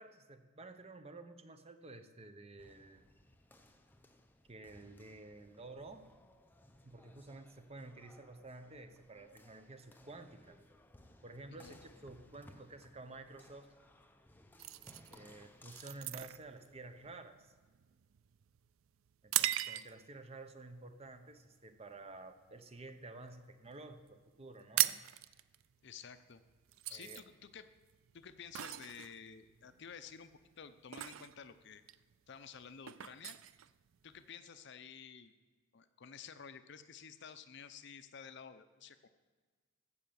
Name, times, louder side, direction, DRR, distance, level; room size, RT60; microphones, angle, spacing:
voice 1, 0.0-3.1 4.5-6.1 6.8-10.6 11.2-13.7 15.1-17.5 19.2-25.0 26.9-27.2, right 2 dB, 30° right, 8 dB, 0.9 m, -52 dB
sound 1, 2.6-17.2, left 1 dB, 10° left, 0.7 m, -63 dB
sound 2, 14.6-20.2 20.7-21.0 21.5-21.8 22.1-23.3 23.6-23.7 23.9-24.1 24.3-34.3, right 14 dB, 70° right, 0.4 m, -39 dB
voice 2, 25.8-26.4 26.9-27.7 28.1-31.8 32.3-33.4 34.0-35.3 35.7-39.1, left 7 dB, 55° left, 11 dB, 0.6 m, -52 dB
15.5 x 5.7 x 7.0 m, 1.4 s
head